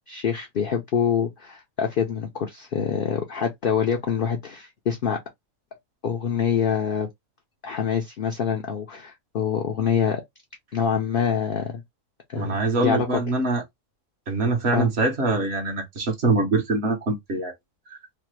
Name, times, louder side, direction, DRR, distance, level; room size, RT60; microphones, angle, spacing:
voice 1, 0.1-5.2 6.0-7.1 7.6-10.2 10.7-11.8 12.3-13.2 14.7-14.9, left 7 dB, 60° left, 0.6 m, -25 dB
voice 2, 12.4-13.6 14.3-17.5, right 2 dB, 50° right, 1.0 m, -24 dB
3.2 x 2.1 x 3.0 m
omnidirectional pair, 1.5 m